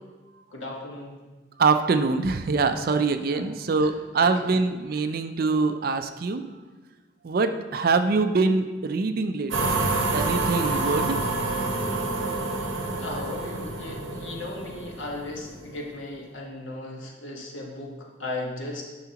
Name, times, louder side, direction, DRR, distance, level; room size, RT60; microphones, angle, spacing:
voice 1, 0.5-1.2 3.2-3.5 3.8-4.5 12.9-18.8, left 2 dB, 85° left, -1 dB, 1.3 m, -36 dB
voice 2, 1.6-6.4 7.2-9.8 10.1-11.2, right 4 dB, 50° right, 9 dB, 0.4 m, -24 dB
sound 1, 9.5-15.7, right 3 dB, 75° right, 0.9 m, -28 dB
sound 2, 10.6-14.8, left 3 dB, 45° left, 0.7 m, -41 dB
9.5 x 5.8 x 2.9 m, 1.2 s
head